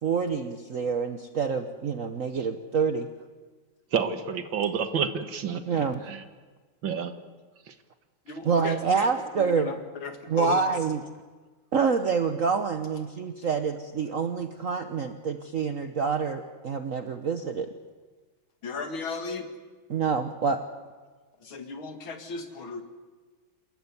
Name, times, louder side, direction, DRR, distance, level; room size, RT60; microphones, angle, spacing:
voice 1, 0.0-3.1 5.7-6.0 8.4-9.7 10.3-11.0 11.7-17.7 19.9-20.6, right 5 dB, 50° right, 7 dB, 1.2 m, -27 dB
voice 2, 3.9-5.6 6.1-6.2 6.8-7.1 7.7-7.8, right 7 dB, 70° right, 9 dB, 2.2 m, -28 dB
voice 3, 8.3-9.0 9.3-9.8 10.0-10.6 18.6-19.5 21.4-22.8, left 4 dB, 80° left, 6 dB, 2.9 m, -35 dB
28.0 x 13.5 x 9.8 m, 1.4 s
omnidirectional pair, 2.2 m